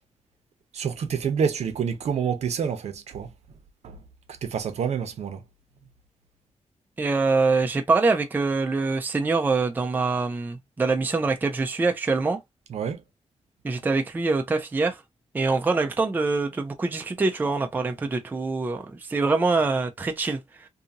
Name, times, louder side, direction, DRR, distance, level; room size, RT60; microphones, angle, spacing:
voice 1, 0.7-3.3 3.8-4.0 4.4-5.4 12.7-13.0, right 7 dB, 70° right, 0.7 m, -27 dB
voice 2, 7.0-12.4 13.6-15.0 15.3-20.7, right 3 dB, 15° right, 0.4 m, -24 dB
2.7 x 2.5 x 2.7 m
wide cardioid pair, 150°, 12 cm